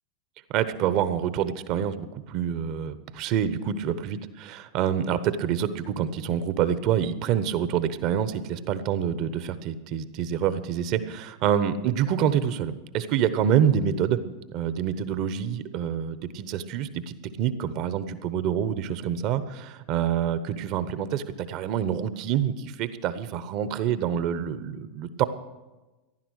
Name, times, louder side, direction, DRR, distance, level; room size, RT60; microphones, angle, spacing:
voice 1, 0.5-14.2 14.5-25.2, right 9 dB, 50° right, 13 dB, 1.0 m, -27 dB
15.0 x 11.0 x 6.5 m, 1.1 s
hypercardioid pair, 90°, 0 cm